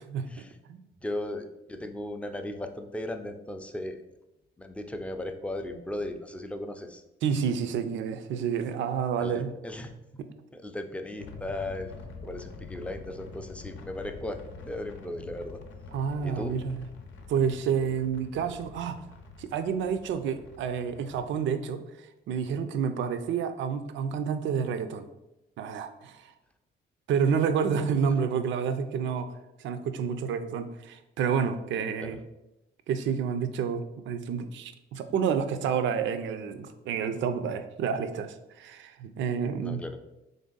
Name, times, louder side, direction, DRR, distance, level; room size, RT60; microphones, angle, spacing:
voice 1, 1.0-4.0 4.6-7.0 9.2-9.9 10.5-11.9 12.2-14.4 14.6-15.6 16.2-16.6 32.0-32.2 39.6-40.0, left 1 dB, 5° left, 6 dB, 0.3 m, -36 dB
voice 2, 7.2-9.5 10.2-10.3 15.9-16.8 17.3-19.0 19.4-21.8 22.3-25.1 25.6-26.2 27.1-29.3 29.6-32.2 32.9-39.8, right 7 dB, 70° right, 9 dB, 0.4 m, -29 dB
sound 1, 11.2-21.5, left 4 dB, 80° left, 0.6 m, -46 dB
3.3 x 2.6 x 3.7 m, 0.93 s
cardioid pair, 90°, 20 cm